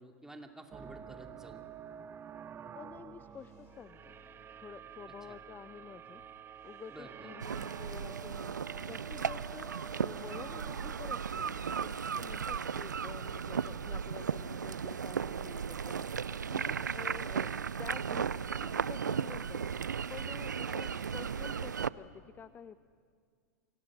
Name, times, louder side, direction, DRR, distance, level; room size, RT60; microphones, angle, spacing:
voice 1, 0.0-1.6 5.2-5.3 6.9-7.3 13.5-13.7 16.0-16.2 20.7-21.1, right 1 dB, 5° right, 3 dB, 2.7 m, -52 dB
sound 1, 0.7-12.8, right 8 dB, 25° right, 0.7 m, -50 dB
voice 2, 2.7-4.1 4.6-6.2 6.6-8.6 8.8-16.1 16.5-17.5 17.8-18.3 18.6-19.7 20.1-22.8, left 7 dB, 20° left, 15 dB, 0.6 m, -49 dB
sound 2, 2.8-15.7, left 6 dB, 60° left, 3.2 m, -64 dB
sound 3, 7.4-21.9, right 6 dB, 85° right, 0.6 m, -36 dB
29.0 x 24.0 x 6.3 m, 2.1 s
hypercardioid pair, 100°, 10 cm